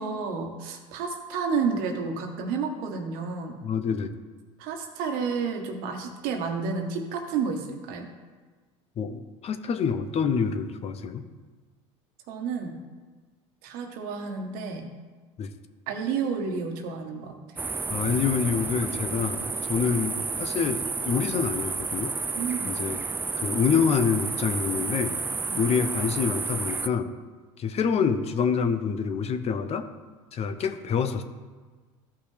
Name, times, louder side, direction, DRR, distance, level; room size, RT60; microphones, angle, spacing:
voice 1, 0.0-3.6 4.6-8.1 12.3-12.8 13.6-14.9 15.9-17.4 22.3-22.8 25.5-25.6, right 5 dB, 65° right, 4 dB, 1.3 m, -30 dB
voice 2, 3.6-4.1 9.0-11.3 15.4-15.5 17.9-22.1 22.7-23.0 23.4-25.2 25.6-27.1 27.6-29.9 30.3-31.2, left 6 dB, 40° left, 9 dB, 0.7 m, -26 dB
sound 1, 17.6-26.9, right 4 dB, 15° right, 0.3 m, -31 dB
13.5 x 5.6 x 3.4 m, 1.4 s
supercardioid pair, 90°, 16 cm